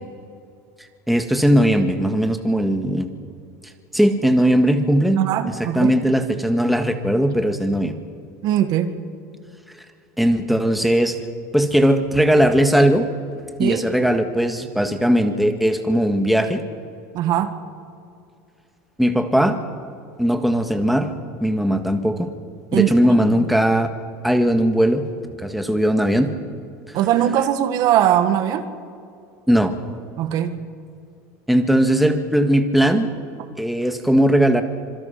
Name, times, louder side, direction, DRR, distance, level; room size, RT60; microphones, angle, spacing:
voice 1, 1.1-3.1 3.9-5.2 5.5-8.0 10.2-11.2 11.5-13.1 13.6-16.6 19.0-19.6 20.2-21.1 21.4-22.3 22.7-23.9 24.2-25.0 25.4-26.3 26.9-27.0 29.5-29.7 31.5-33.1 33.6-34.6, equal, ahead, 6 dB, 1.8 m, -18 dB
voice 2, 5.2-5.9 8.4-8.9 13.6-13.8 17.1-17.5 22.7-22.9 26.9-28.7 30.2-30.6, right 11 dB, 50° right, 9 dB, 1.8 m, -20 dB
26.0 x 23.0 x 5.9 m, 2.5 s
supercardioid pair, 130°, 8 cm